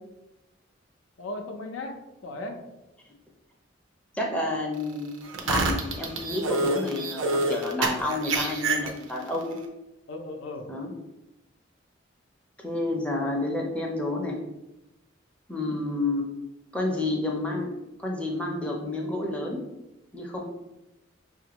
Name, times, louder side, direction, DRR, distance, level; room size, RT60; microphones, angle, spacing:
voice 1, 1.2-2.6 10.1-10.7, left 2 dB, 80° left, 3 dB, 0.6 m, -36 dB
voice 2, 4.1-5.1 5.4-9.6 10.7-10.9 12.6-14.4 15.5-16.3 16.7-17.7 18.0-19.6 20.1-20.4, left 2 dB, 5° left, -1 dB, 0.5 m, -29 dB
sound 1, 5.2-9.3, right 2 dB, 80° right, 0.6 m, -27 dB
5.2 x 2.5 x 2.9 m, 0.95 s
head